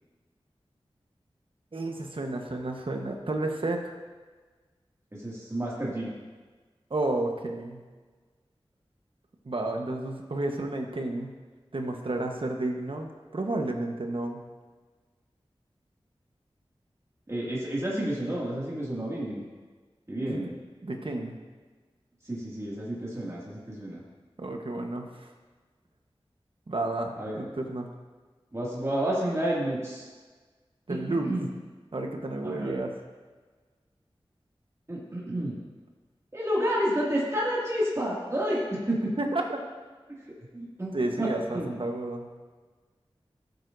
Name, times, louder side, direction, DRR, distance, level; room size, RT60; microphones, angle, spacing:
voice 1, 1.7-3.9 6.9-7.8 9.4-11.3 11.7-14.4 20.2-20.4 20.8-21.4 24.4-25.3 26.7-27.9 30.9-31.3 31.9-32.9 39.2-39.7 40.9-42.3, right 2 dB, 60° right, 3 dB, 1.2 m, -31 dB
voice 2, 5.1-6.1 17.3-19.4 20.1-20.5 22.2-24.0 27.2-27.4 28.5-30.1 30.9-31.0 31.2-31.5 32.4-32.8 34.9-35.6 36.3-39.1 40.1-40.2 40.5-40.9 41.2-41.3 41.5-41.7, right 1 dB, 30° right, -6 dB, 2.4 m, -30 dB
14.5 x 8.0 x 2.7 m, 1.4 s
wide cardioid pair, 50°, 10 cm